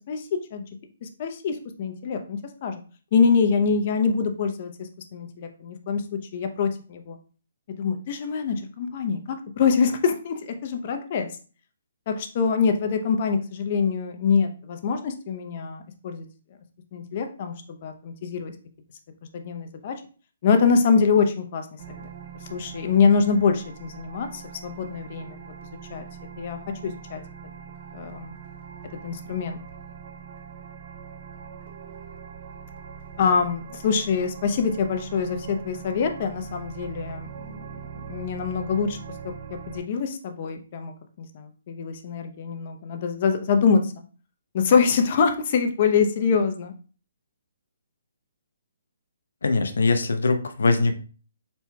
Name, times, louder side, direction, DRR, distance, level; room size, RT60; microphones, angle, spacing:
voice 1, 0.1-0.6 1.0-2.8 3.1-7.2 7.8-11.3 12.1-16.3 16.9-18.5 19.3-20.0 20.4-22.1 22.5-25.4 25.9-26.0 26.4-27.2 27.9-28.4 29.0-29.6 33.2-37.7 38.1-39.0 39.7-43.9 44.5-46.7, left 5 dB, 40° left, 6 dB, 0.7 m, -24 dB
sound 1, 21.8-39.8, right 7 dB, 50° right, 0.6 m, -42 dB
voice 2, 49.4-50.9, left 3 dB, 80° left, 8 dB, 0.6 m, -22 dB
4.3 x 4.2 x 2.3 m, 0.38 s
hypercardioid pair, 155°, 0 cm